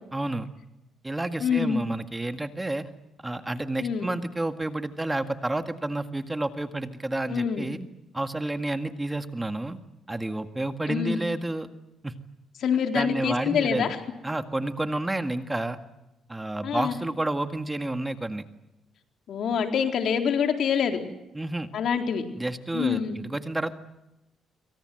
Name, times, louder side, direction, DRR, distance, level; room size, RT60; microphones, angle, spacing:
voice 1, 0.1-0.5 1.0-2.9 3.2-7.8 8.1-9.8 10.1-11.7 12.0-12.1 12.9-13.9 14.2-15.8 16.3-18.4 21.3-21.7 22.4-23.7, right 2 dB, 15° right, 8 dB, 1.9 m, -30 dB
voice 2, 1.4-1.8 3.8-4.1 7.3-7.7 10.9-11.2 12.6-14.0 16.6-17.0 19.3-21.0 21.7-22.2 22.7-23.2, left 7 dB, 65° left, 5 dB, 4.0 m, -26 dB
26.5 x 24.5 x 7.9 m, 0.93 s
cardioid pair, 90°, 0 cm